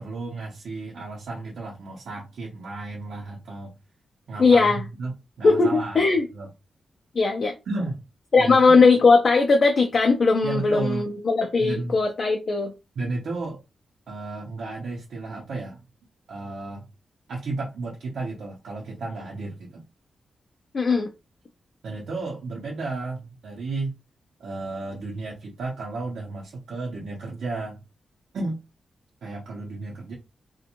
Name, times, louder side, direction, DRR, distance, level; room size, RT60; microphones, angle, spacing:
voice 1, 0.0-3.7 4.3-6.0 6.3-6.5 7.7-8.0 8.4-8.8 10.4-11.1 11.6-12.0 13.0-13.6 14.1-15.8 16.3-16.9 17.3-19.8 21.8-23.9 24.4-27.8 28.3-28.6 29.2-30.1, right 3 dB, 70° right, 0.7 m, -33 dB
voice 2, 4.4-4.9 5.4-6.3 7.1-7.5 8.3-12.7 20.7-21.1, left 4 dB, 40° left, 0.4 m, -19 dB
2.5 x 2.2 x 2.9 m
wide cardioid pair, 170°, 0 cm